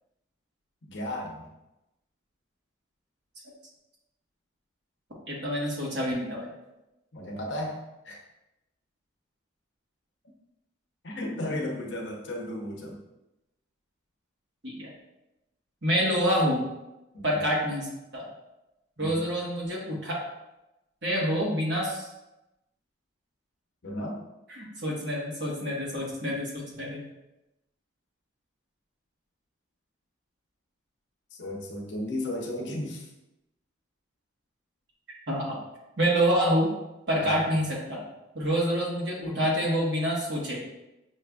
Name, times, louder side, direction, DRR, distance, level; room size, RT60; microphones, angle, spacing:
voice 1, 0.8-1.5 7.1-8.2 11.0-13.0 17.1-17.4 19.0-19.2 23.8-24.2 31.4-33.1 37.2-37.5, left 1 dB, 65° left, 0 dB, 0.7 m, -34 dB
voice 2, 5.3-6.5 14.6-14.9 15.8-16.7 17.2-17.9 18.1-18.3 19.0-20.2 21.0-22.1 24.5-27.0 35.3-35.6 36.0-36.7 37.1-38.0 38.3-40.6, equal, 60° right, -4 dB, 1.2 m, -27 dB
6.3 x 2.5 x 2.3 m, 0.94 s
head